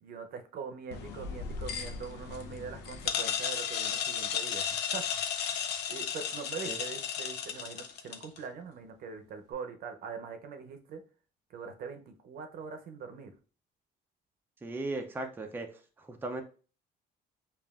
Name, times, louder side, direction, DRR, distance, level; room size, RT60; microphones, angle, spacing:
voice 1, 0.0-5.1 5.4-11.0 11.5-13.3, right 5 dB, 60° right, 6 dB, 0.6 m, -43 dB
sound 1, 0.9-8.4, left 8 dB, 85° left, 0.6 m, -34 dB
voice 2, 14.6-15.7 16.0-16.4, right 2 dB, 10° right, 4 dB, 0.5 m, -37 dB
5.1 x 2.4 x 2.4 m, 0.37 s
cardioid pair, 110°, 17 cm